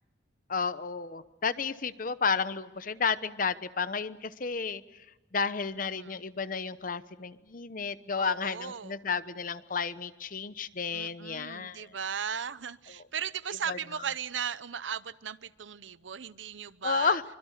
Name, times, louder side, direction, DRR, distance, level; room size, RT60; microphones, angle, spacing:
voice 1, 0.5-4.8 5.3-11.9 13.7-13.8 16.8-17.2, left 5 dB, 45° left, 0.9 m, -32 dB
voice 2, 8.2-9.0 10.9-17.2, right 7 dB, 80° right, 0.8 m, -37 dB
25.5 x 25.0 x 6.7 m
head